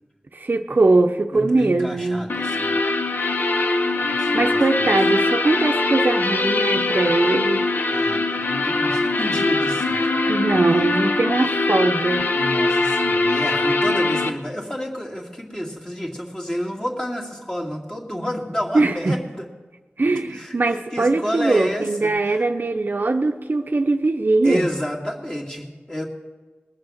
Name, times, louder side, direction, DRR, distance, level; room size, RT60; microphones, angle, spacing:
voice 1, 0.3-2.3 4.1-7.6 10.3-12.3 18.7-19.2 20.0-24.7, right 3 dB, 55° right, 6 dB, 0.7 m, -21 dB
voice 2, 1.3-2.7 4.0-4.9 7.9-10.9 11.4-11.5 12.3-19.5 20.3-22.5 24.4-26.1, equal, 20° left, -2 dB, 2.3 m, -30 dB
sound 1, 2.3-14.3, left 2 dB, 55° left, 0.8 m, -22 dB
20.5 x 7.2 x 6.4 m, 1.3 s
wide cardioid pair, 65°, 4 cm